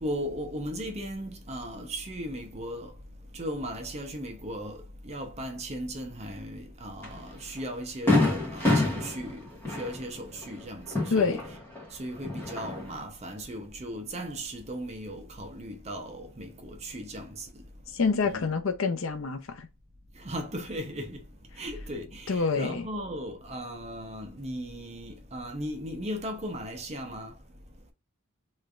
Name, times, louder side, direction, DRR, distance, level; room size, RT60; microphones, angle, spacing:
voice 1, 0.0-2.9 3.3-9.4 9.7-11.4 11.9-17.6 18.2-18.4 20.2-21.2 21.5-27.3, equal, 30° right, 0.6 m, -37 dB
Fireworks, 7.0-7.2 7.6-7.7 8.1-11.8 12.2-13.0, left 2 dB, 10° left, 1.5 m, -27 dB
voice 2, 17.9-19.7 22.3-22.9, left 4 dB, 70° left, 0.6 m, -27 dB
3.2 x 3.2 x 2.4 m
head